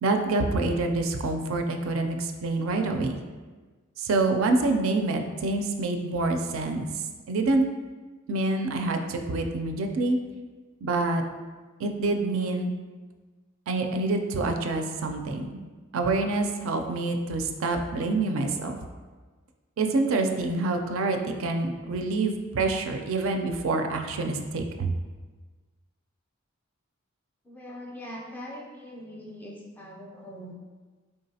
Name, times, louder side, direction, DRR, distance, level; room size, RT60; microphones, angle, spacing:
voice 1, 0.0-3.2 4.0-6.9 7.3-7.6 8.3-10.2 10.8-11.2 11.8-12.7 13.7-15.6 15.9-18.8 19.8-24.9, right 2 dB, 75° right, 5 dB, 0.4 m, -26 dB
voice 2, 27.4-30.5, equal, 10° left, -2 dB, 0.4 m, -42 dB
3.8 x 3.6 x 2.7 m, 1.4 s
head